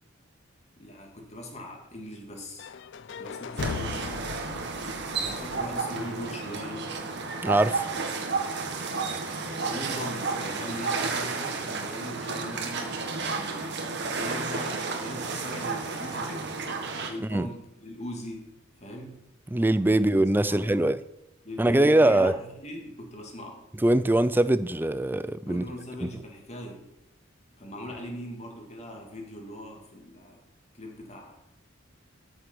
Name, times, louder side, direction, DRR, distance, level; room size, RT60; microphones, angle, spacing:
voice 1, 0.8-2.7 3.2-4.8 5.2-6.9 9.4-13.8 14.1-16.6 17.1-18.5 18.8-19.2 19.9-20.1 20.5-20.9 21.4-23.6 25.4-26.8 27.6-30.4 30.7-31.4, equal, 35° left, 2.4 m, -40 dB
sound 1, 2.6-6.5, left 5 dB, 60° left, 0.4 m, -38 dB
sound 2, 3.6-17.1, right 4 dB, 60° right, 1.7 m, -32 dB
voice 2, 7.4-7.9 17.3-17.5 19.5-21.0 21.6-22.3 23.8-25.6 26.0-26.1, right 1 dB, 10° right, 0.4 m, -22 dB
13.5 x 6.3 x 6.2 m
head